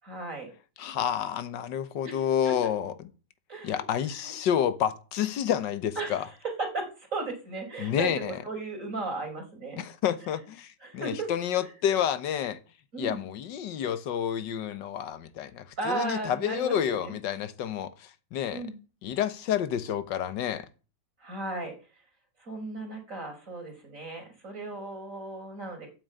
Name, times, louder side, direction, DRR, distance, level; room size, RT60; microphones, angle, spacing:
voice 1, 0.0-0.5 2.0-2.2 2.4-2.5 3.5-3.8 4.1-4.3 6.0-9.8 10.2-10.4 10.8-11.3 11.6-11.7 12.9-13.2 15.8-17.1 18.5-18.7 21.2-21.7 22.4-26.0, right 3 dB, 45° right, 5.0 m, -36 dB
voice 2, 0.8-3.1 3.6-6.2 7.8-8.4 9.8-12.6 13.0-18.6 19.0-20.7, left 9 dB, 75° left, 1.8 m, -29 dB
12.5 x 8.0 x 9.1 m
omnidirectional pair, 1.9 m